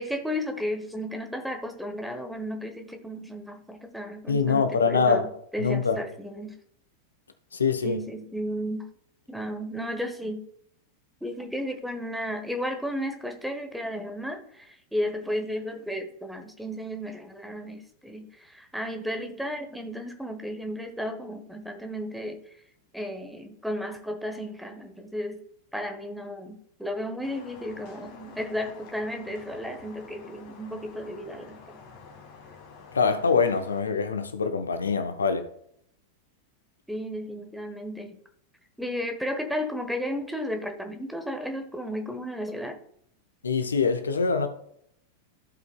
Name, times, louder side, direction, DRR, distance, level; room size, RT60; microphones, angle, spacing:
voice 1, 0.0-6.5 7.8-8.9 9.3-10.4 11.2-22.4 22.9-25.4 25.7-31.8 36.9-38.2 38.8-42.8, equal, ahead, 1.1 m, -33 dB
voice 2, 4.3-5.3 5.6-6.0 7.5-8.0 32.9-35.5 43.4-44.5, left 5 dB, 75° left, 0.7 m, -24 dB
sound 1, 27.2-33.8, left 5 dB, 45° left, 1.9 m, -49 dB
14.5 x 5.3 x 2.2 m
figure-of-eight pair, 90°, 0 cm